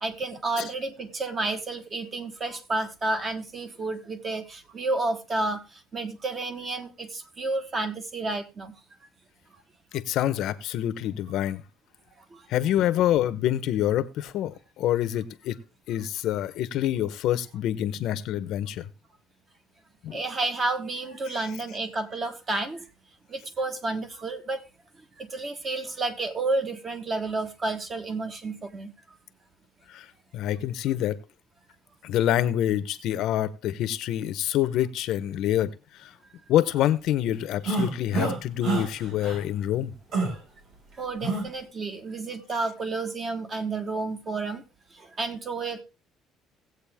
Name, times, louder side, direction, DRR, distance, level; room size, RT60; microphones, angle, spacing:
voice 1, 0.0-8.7 12.3-12.4 20.1-22.8 23.3-24.6 25.2-28.9 41.0-44.6 44.9-45.8, right 3 dB, 25° right, 1.2 m, -31 dB
voice 2, 9.9-11.6 12.5-15.6 15.9-18.9 20.0-20.2 29.9-30.1 30.3-31.2 32.0-36.1 36.5-39.9, left 12 dB, 60° left, 0.8 m, -26 dB
sound 1, 37.6-38.4 38.6-38.8 39.2-39.4 40.1-40.3 41.2-41.4, right 3 dB, 55° right, 6.3 m, -26 dB
17.0 x 8.0 x 3.4 m
cardioid pair, 160°, 0 cm